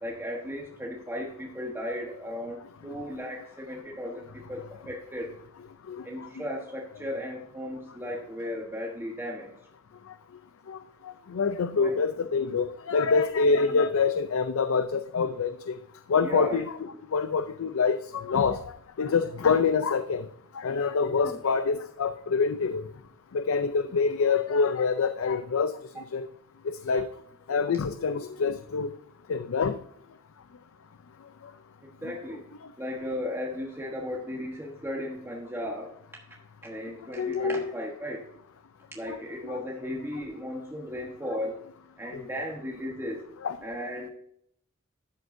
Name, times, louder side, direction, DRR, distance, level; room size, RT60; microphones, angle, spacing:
voice 1, 0.0-5.4 6.0-9.5 11.8-11.9 13.5-13.8 16.2-16.6 21.1-21.4 31.8-32.4 32.8-35.9 36.6-38.3 38.9-41.6 42.0-43.3 43.6-44.1, left 1 dB, 10° right, -2 dB, 1.2 m, -36 dB
voice 2, 5.9-6.3 10.7-10.8 11.0-15.8 16.1-16.6 17.1-20.3 20.5-22.8 23.3-26.3 26.6-27.1 27.5-28.9 29.3-29.8 32.0-32.1 37.2-37.6 39.1-39.2 39.4-39.6 42.1-42.2 43.4-43.6, left 5 dB, 85° left, 10 dB, 0.5 m, -26 dB
12.5 x 7.8 x 2.6 m, 0.69 s
head